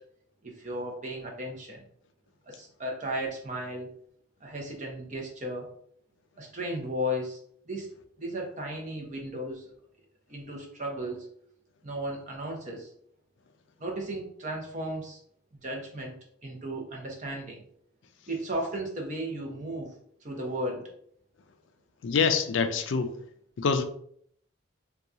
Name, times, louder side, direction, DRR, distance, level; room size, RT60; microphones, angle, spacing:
voice 1, 0.4-1.8 2.5-3.9 4.4-5.7 6.4-7.4 7.7-7.9 8.2-9.7 10.3-11.3 11.8-12.9 13.8-15.2 15.6-16.1 16.4-17.6 18.3-19.9 20.2-20.8, equal, 35° right, 0.7 m, -35 dB
voice 2, 22.0-23.1 23.6-23.8, left 5 dB, 65° left, 0.4 m, -25 dB
2.8 x 2.3 x 3.7 m
head